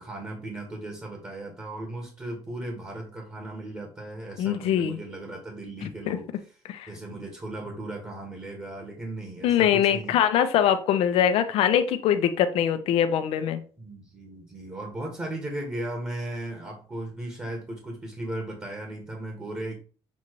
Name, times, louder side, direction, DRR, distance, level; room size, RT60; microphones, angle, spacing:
voice 1, 0.0-6.6 6.9-10.2 13.8-19.8, right 1 dB, 20° right, 1 dB, 1.6 m, -36 dB
voice 2, 4.4-5.0 5.8-6.2 6.7-6.9 9.4-13.6, left 9 dB, 75° left, 10 dB, 0.8 m, -23 dB
7.2 x 2.8 x 4.7 m, 0.39 s
cardioid pair, 130°, 10 cm